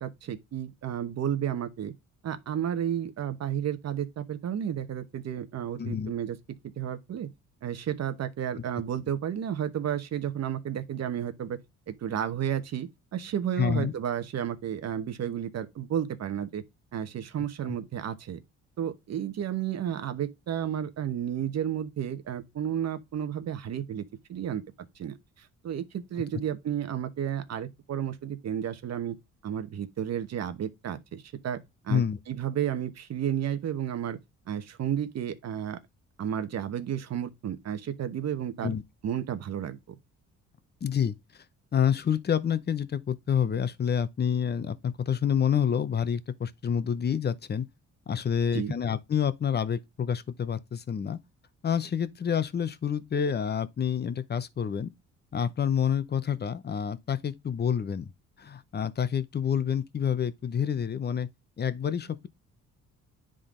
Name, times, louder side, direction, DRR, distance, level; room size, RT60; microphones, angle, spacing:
voice 1, 0.0-1.9 2.2-6.4 6.8-7.3 7.6-11.6 11.9-16.6 16.9-18.4 18.8-29.2 29.4-31.6 31.8-34.2 34.5-35.8 36.2-38.7 39.0-39.8 48.5-48.7, right 9 dB, 60° right, 1.1 m, -32 dB
voice 2, 5.8-6.1 13.6-13.9 31.9-32.2 38.6-38.8 40.8-41.1 41.7-47.7 48.1-51.2 51.6-54.9 55.3-58.1 58.4-61.3 61.6-62.3, left 8 dB, 35° left, 0.7 m, -28 dB
9.9 x 3.9 x 3.8 m
cardioid pair, 90°, 30 cm